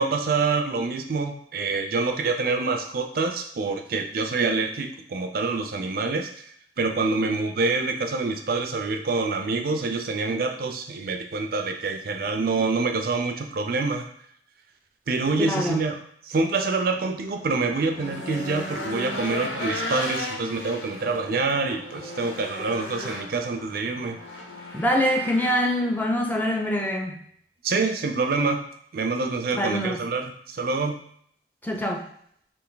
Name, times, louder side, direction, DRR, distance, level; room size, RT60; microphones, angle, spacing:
voice 1, 0.0-6.3 6.8-14.1 15.1-24.2 27.6-28.6 28.9-31.0, right 3 dB, 55° right, 5 dB, 0.4 m, -26 dB
voice 2, 15.4-15.8 24.7-27.2 29.5-30.0 31.6-32.0, equal, 10° left, 1 dB, 0.4 m, -24 dB
Race car auto racing / Engine, 16.8-26.9, left 1 dB, 90° left, 0.8 m, -36 dB
3.3 x 2.5 x 3.9 m, 0.66 s
head